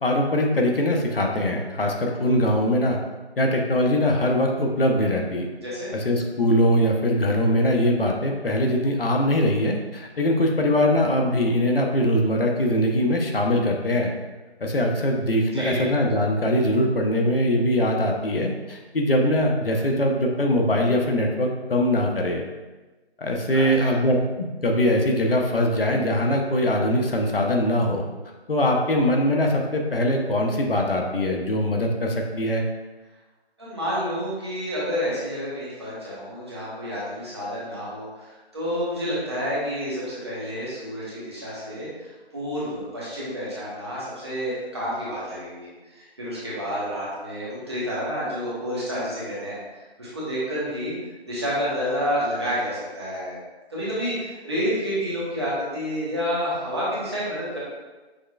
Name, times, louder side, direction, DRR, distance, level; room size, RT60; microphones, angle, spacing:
voice 1, 0.0-3.0 3.4-5.5 5.9-14.1 14.6-22.4 23.2-28.1 28.5-32.7, left 1 dB, 60° left, 1 dB, 0.7 m, -22 dB
voice 2, 15.5-15.8 23.5-24.0 33.6-50.9 51.3-53.4 53.7-57.6, equal, 25° right, -8 dB, 1.1 m, -29 dB
6.3 x 3.1 x 2.3 m, 1.2 s
figure-of-eight pair, 170°, 33 cm